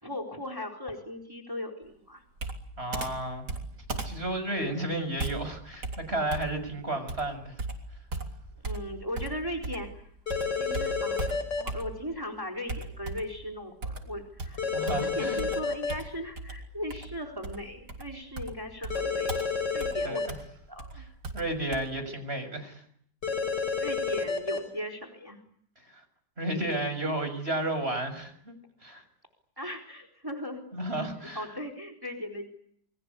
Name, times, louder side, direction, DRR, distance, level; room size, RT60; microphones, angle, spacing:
voice 1, 0.0-2.2 8.6-10.0 10.5-11.2 11.6-14.7 15.0-20.3 20.7-21.0 23.8-25.4 29.6-30.6 31.2-32.5, left 1 dB, 10° right, 3 dB, 4.1 m, -38 dB
Computer keyboard, 2.4-10.0 10.3-12.2 12.7-13.4 13.8-21.8, right 2 dB, 70° right, 4.0 m, -38 dB
voice 2, 2.8-3.4 4.0-7.5 14.7-15.4 20.0-20.2 20.9-21.0 21.3-22.8 25.8-26.0 26.4-28.5 28.8-29.0 30.7-31.5, right 1 dB, 35° right, 8 dB, 6.8 m, -32 dB
sound 1, 10.3-11.6 14.6-15.9 18.9-20.3 23.2-24.6, left 5 dB, 85° left, 6.2 m, -30 dB
29.0 x 24.0 x 8.3 m, 0.67 s
omnidirectional pair, 1.9 m